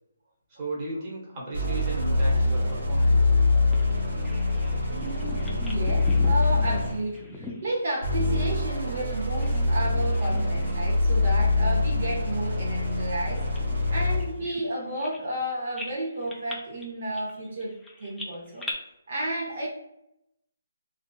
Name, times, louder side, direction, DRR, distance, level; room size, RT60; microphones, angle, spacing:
voice 1, 0.5-3.2, right 1 dB, 25° right, -5 dB, 1.0 m, -35 dB
sound 1, 1.5-7.1 8.0-14.4, left 2 dB, 80° right, 1.4 m, -24 dB
Bird vocalization bird call bird song, 3.7-9.7 10.0-10.9 11.2-11.4 12.0-15.4 15.8-18.7, left 1 dB, ahead, 0.4 m, -42 dB
voice 2, 4.9-13.5 13.9-18.6 19.1-19.7, right 1 dB, 55° right, -4 dB, 0.8 m, -32 dB
2.6 x 2.3 x 2.2 m, 0.83 s
hypercardioid pair, 160°, 0 cm